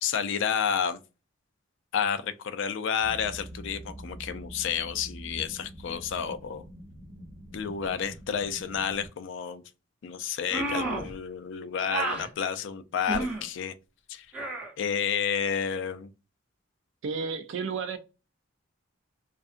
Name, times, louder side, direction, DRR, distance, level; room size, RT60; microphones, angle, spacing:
voice 1, 0.0-1.0 1.9-6.6 7.5-9.6 10.0-13.7 14.1-14.3 14.8-16.1, left 7 dB, 65° left, 0.3 m, -30 dB
sound 1, 3.0-9.1, equal, 40° right, 0.8 m, -45 dB
sound 2, 10.5-11.1 11.9-12.3 13.1-13.4 14.3-14.7, right 2 dB, 5° right, 0.6 m, -30 dB
voice 2, 17.0-18.0, right 5 dB, 65° right, 0.4 m, -32 dB
2.6 x 2.4 x 2.4 m
head